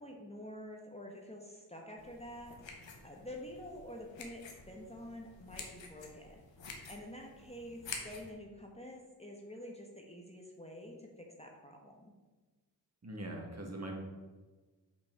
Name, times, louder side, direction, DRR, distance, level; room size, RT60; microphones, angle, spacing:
voice 1, 0.0-6.4 6.9-12.1, left 1 dB, 15° left, 0 dB, 1.1 m, -48 dB
sound 1, 2.0-8.3, left 4 dB, 85° left, 1.1 m, -49 dB
voice 2, 13.0-14.0, right 1 dB, 35° right, 0 dB, 1.7 m, -42 dB
5.5 x 5.3 x 4.6 m, 1.3 s
cardioid pair, 45°, 44 cm